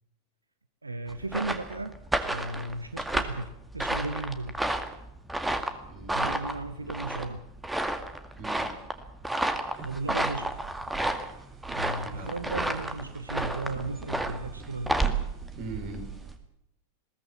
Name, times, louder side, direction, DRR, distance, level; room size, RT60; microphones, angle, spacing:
voice 1, 0.8-2.0 2.2-4.6 6.1-7.5 9.8-10.6 11.7-15.0, right 2 dB, 80° right, 11 dB, 0.9 m, -35 dB
sound 1, 1.1-16.4, right 2 dB, 5° right, 2.1 m, -31 dB
voice 2, 5.8-6.9 8.4-8.7 12.0-12.5 15.6-16.1, right 3 dB, 45° right, 6 dB, 5.4 m, -42 dB
sound 2, 9.7-16.4, right 7 dB, 25° right, 3.4 m, -47 dB
21.0 x 18.0 x 7.2 m, 0.75 s
figure-of-eight pair, 90°, 0 cm